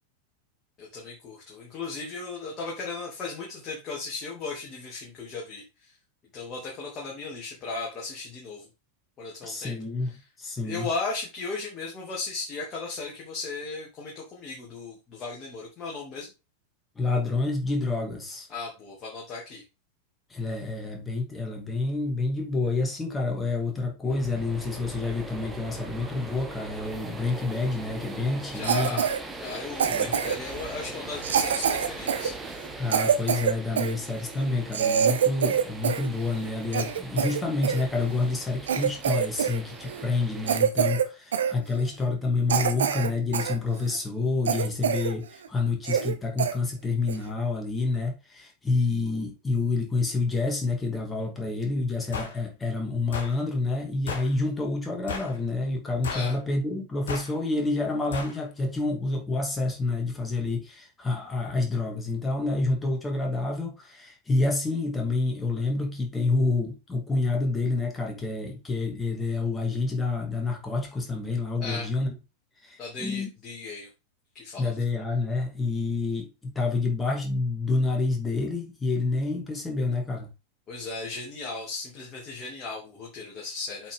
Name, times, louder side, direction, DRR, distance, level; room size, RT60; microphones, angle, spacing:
voice 1, 0.8-5.9 6.3-8.7 9.2-9.7 10.6-16.3 18.5-19.6 28.5-29.1 29.4-32.3 56.1-56.3 71.6-71.9 72.8-73.9 74.3-74.7 80.7-83.9, left 3 dB, 30° left, 2.8 m, -36 dB
voice 2, 9.4-10.1 10.4-10.9 17.0-18.5 20.3-29.0 29.9-30.1 32.8-72.1 72.6-73.3 74.6-80.3, left 3 dB, 15° left, 2.6 m, -28 dB
sound 1, 24.1-40.6, right 2 dB, 10° right, 1.6 m, -41 dB
Cough, 28.6-29.2 29.8-30.5 31.2-33.9 34.4-34.5 34.7-36.1 36.4-37.8 38.3-38.4 38.7-39.6 39.9-40.1 40.5-41.1 41.3-41.5 42.0-42.1 42.5-43.6 43.9-44.0 44.5-45.1 45.4-45.5 45.8-46.1 46.4-46.5 47.1-47.3, right 8 dB, 65° right, 1.0 m, -25 dB
sound 2, 52.1-52.3 53.1-53.3 54.1-54.3 55.1-55.4 56.0-56.3 57.1-57.3 58.1-58.3, left 5 dB, 60° left, 2.7 m, -34 dB
8.1 x 5.8 x 3.8 m
figure-of-eight pair, 90°, 0 cm